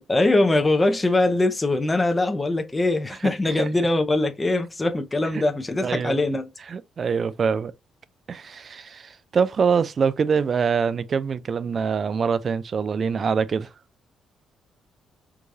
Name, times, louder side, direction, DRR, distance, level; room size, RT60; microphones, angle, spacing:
voice 1, 0.1-6.5, left 2 dB, 20° left, 0.7 m, -22 dB
voice 2, 5.8-6.2 6.7-7.7 8.3-13.7, right 6 dB, 45° right, 0.4 m, -24 dB
4.7 x 2.3 x 2.7 m
cardioid pair, 90°, 0 cm